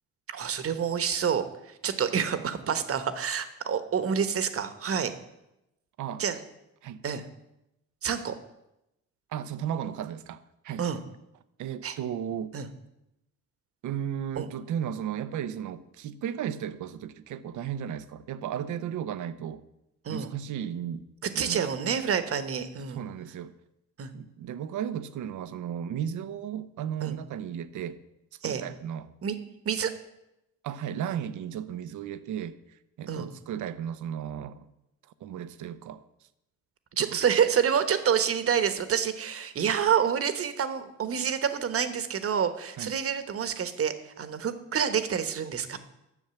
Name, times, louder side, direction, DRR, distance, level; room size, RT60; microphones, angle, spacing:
voice 1, 0.3-5.1 6.2-6.4 7.0-7.2 8.0-8.3 10.8-11.0 11.8-11.9 12.5-12.7 14.4-14.5 20.0-20.3 21.2-23.0 24.0-24.1 27.0-27.2 28.4-28.6 29.2-29.3 29.6-29.9 33.1-33.2 37.0-45.8, right 7 dB, 50° right, 1.2 m, -28 dB
voice 2, 9.3-10.9 11.6-12.6 13.8-19.6 20.1-21.1 21.3-21.6 22.9-23.6 24.1-28.0 28.4-29.1 30.6-34.7 35.0-36.0 37.0-37.2 42.8-43.0, right 9 dB, 75° right, 0.8 m, -35 dB
11.0 x 7.0 x 7.0 m
cardioid pair, 90°, 30 cm